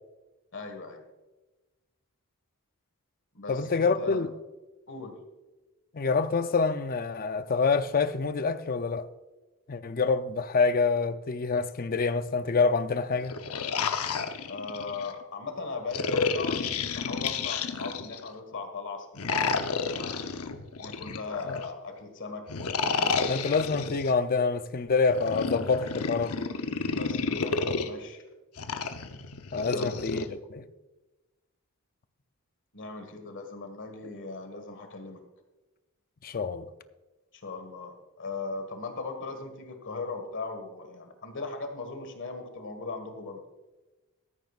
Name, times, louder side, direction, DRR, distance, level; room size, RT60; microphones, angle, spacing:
voice 1, 0.5-1.0 3.3-4.3 4.9-5.2 14.5-16.6 17.0-20.2 20.8-23.5 26.9-28.2 29.7-30.3 32.7-35.2 37.3-43.4, left 3 dB, 55° left, 1.7 m, -39 dB
voice 2, 3.5-4.3 5.9-9.1 9.7-13.4 21.5-21.6 23.3-26.5 29.5-30.6 36.2-36.7, left 4 dB, 40° left, 0.5 m, -27 dB
sound 1, 13.2-15.1 15.9-18.3 19.1-21.7 22.5-24.1 25.1-27.9 28.6-30.2, left 4 dB, 75° left, 0.8 m, -31 dB
14.5 x 13.5 x 2.5 m
head